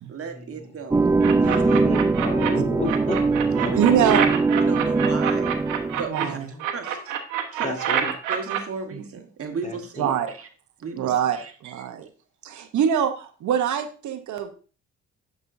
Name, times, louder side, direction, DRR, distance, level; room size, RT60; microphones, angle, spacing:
voice 1, 0.1-1.1 1.4-1.6 2.9-3.3 3.6-5.5 5.9-7.1 7.5-10.5 10.8-11.5, right 5 dB, 50° right, 5 dB, 1.4 m, -36 dB
sound 1, 0.9-6.1, right 3 dB, 10° right, 0.3 m, -21 dB
sound 2, 1.2-2.5 2.8-6.2 6.6-8.6, right 10 dB, 90° right, 1.2 m, -27 dB
voice 2, 1.4-3.2 3.5-3.7 6.3-6.6 7.6-8.1 9.6-10.1, left 2 dB, 25° left, 5 dB, 1.8 m, -32 dB
voice 3, 3.8-4.2 6.1-6.4 10.0-10.3 11.0-11.4 11.6-12.1 12.4-14.5, right 9 dB, 75° right, 7 dB, 0.9 m, -23 dB
11.0 x 5.4 x 2.6 m, 0.37 s
cardioid pair, 90°, 30 cm